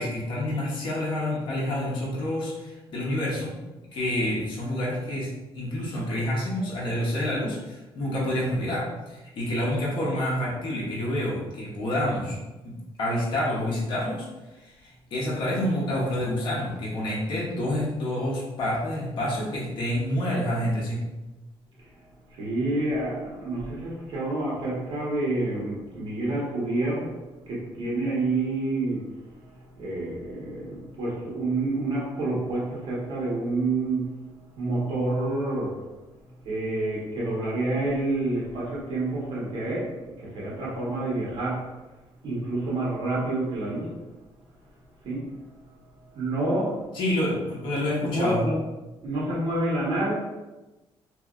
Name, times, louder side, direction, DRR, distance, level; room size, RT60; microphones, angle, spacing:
voice 1, 0.0-3.5 3.9-12.4 12.6-14.3 14.6-21.0 46.9-48.5, left 1 dB, 55° left, -5 dB, 0.8 m, -28 dB
voice 2, 22.3-27.1 27.5-34.2 34.5-35.8 36.4-41.7 42.2-44.0 45.0-45.3 46.1-46.8 47.8-48.5 49.0-50.1, right 2 dB, 60° right, -6 dB, 1.2 m, -28 dB
2.9 x 2.7 x 2.4 m, 1.1 s
cardioid pair, 160°, 10 cm